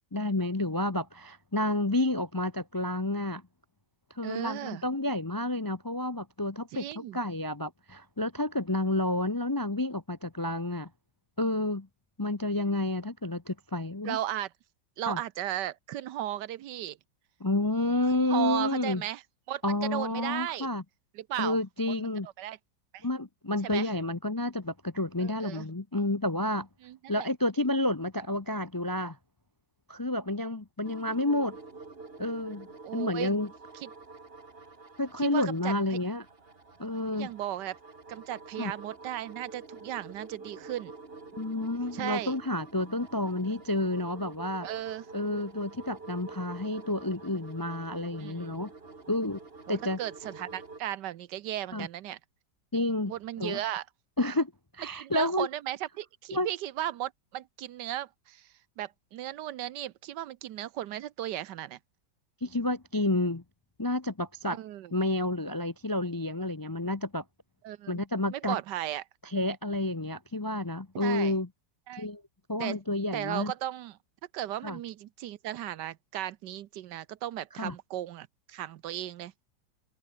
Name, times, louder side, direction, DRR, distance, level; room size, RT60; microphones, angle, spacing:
voice 1, 0.1-3.4 4.1-10.9 11.4-11.9 12.2-14.2 15.1-15.2 17.4-19.0 19.6-20.8 21.4-22.3 23.0-26.7 27.1-29.2 29.9-31.6 32.2-33.5 35.0-36.2 36.8-37.3 38.6-38.7 41.4-44.7 45.1-48.7 49.1-49.4 49.7-50.0 51.7-51.9 52.7-53.1 53.4-53.6 54.2-55.5 56.3-56.5 62.4-63.4 63.8-64.6 64.9-67.2 67.9-68.6 69.2-71.5 72.0-72.2 72.5-73.5 74.6-74.8 77.6-77.7, left 1 dB, 25° left, 0.4 m, -30 dB
voice 2, 4.2-4.8 6.7-7.2 14.0-14.5 15.0-17.0 18.1-19.2 19.5-20.7 21.1-21.6 21.8-22.6 22.9-23.1 23.6-23.9 25.2-25.7 26.8-27.3 32.8-33.3 33.8-33.9 35.2-36.0 37.1-37.8 38.1-40.9 41.9-42.3 44.6-45.0 48.2-48.6 49.7-52.2 53.1-53.8 54.9-58.5 58.8-61.8 64.5-64.9 67.6-68.0 68.3-69.0 70.9-71.3 71.9-72.1 72.6-72.8 73.1-74.0 74.3-79.3, right 12 dB, 80° right, 1.4 m, -36 dB
sound 1, 30.8-50.8, right 3 dB, 35° right, 2.4 m, -48 dB
omnidirectional pair, 1.9 m